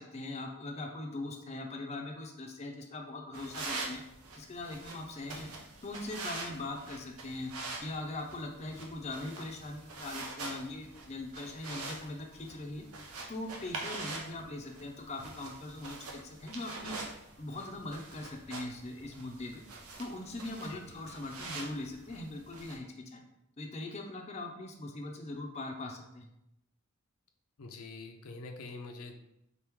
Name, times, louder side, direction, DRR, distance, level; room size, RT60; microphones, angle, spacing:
voice 1, 0.0-4.0 4.3-5.5 5.8-7.5 7.8-12.9 13.3-17.0 17.4-19.6 20.0-23.2 23.6-26.3, left 2 dB, 30° left, 1 dB, 0.5 m, -41 dB
sound 1, 3.3-22.8, right 3 dB, 90° right, 0.7 m, -45 dB
voice 2, 27.6-29.1, left 3 dB, 80° left, 4 dB, 0.5 m, -45 dB
4.0 x 3.0 x 3.5 m, 0.81 s
head